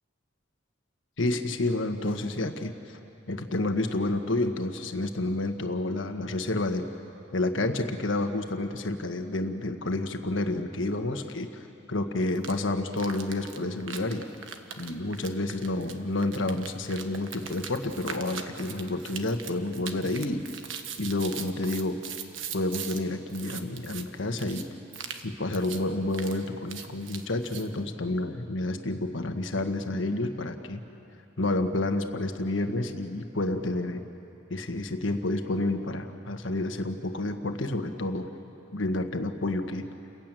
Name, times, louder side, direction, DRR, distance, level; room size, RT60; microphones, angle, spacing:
voice 1, 1.2-3.0 3.3-6.9 7.3-14.3 14.8-20.4 21.0-22.0 22.5-24.7 25.2-30.8 31.4-34.0 34.5-38.3 38.7-39.9, left 2 dB, 75° left, 6 dB, 1.4 m, -29 dB
sound 1, 12.4-12.5 12.9-23.0 23.3-24.0 24.4-24.6 24.9-25.3 25.5-25.8 26.1-27.7, right 7 dB, 80° right, 1.4 m, -40 dB
30.0 x 15.0 x 9.0 m, 2.9 s
head